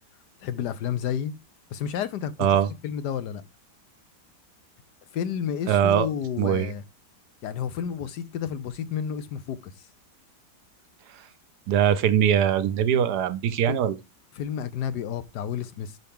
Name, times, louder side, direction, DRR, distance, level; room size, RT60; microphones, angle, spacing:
voice 1, 0.4-1.3 1.7-2.6 2.8-3.4 5.1-6.8 7.4-9.7 14.4-16.0, left 8 dB, 70° left, 1.4 m, -31 dB
voice 2, 5.7-6.1 6.4-6.7 11.7-14.0, right 9 dB, 70° right, 1.3 m, -21 dB
6.6 x 5.8 x 3.6 m
omnidirectional pair, 1.9 m